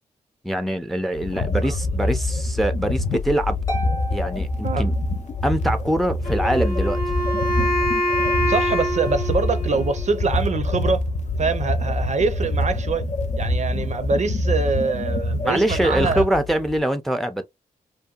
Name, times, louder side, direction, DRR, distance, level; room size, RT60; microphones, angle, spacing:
voice 1, 0.4-3.6 4.1-4.9 5.4-7.0 15.4-17.4, right 1 dB, ahead, 0.5 m, -23 dB
sound 1, 1.1-16.8, left 1 dB, 50° left, 0.6 m, -25 dB
voice 2, 1.6-2.1 4.6-4.9 8.5-11.0 11.4-13.1 13.4-16.2, right 4 dB, 50° right, 0.5 m, -24 dB
Harp, 3.7-5.5, left 1 dB, 20° left, 0.9 m, -34 dB
Wind instrument woodwind instrument, 6.2-10.3, left 1 dB, 80° left, 1.0 m, -25 dB
2.7 x 2.2 x 2.3 m
cardioid pair, 55°, 16 cm